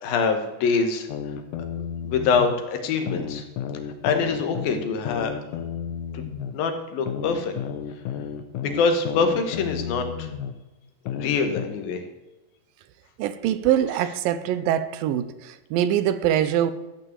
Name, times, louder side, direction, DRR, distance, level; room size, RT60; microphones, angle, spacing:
voice 1, 0.0-1.1 2.0-3.4 4.0-5.3 6.1-6.3 6.5-7.5 8.6-10.3 11.1-12.0, left 5 dB, 85° left, 3.3 m, -24 dB
sound 1, 1.1-2.5 3.1-6.5 7.1-10.5 11.1-11.7, left 8 dB, 70° left, 2.2 m, -32 dB
voice 2, 13.2-16.7, right 11 dB, 85° right, 2.4 m, -23 dB
14.0 x 6.0 x 8.1 m
omnidirectional pair, 4.0 m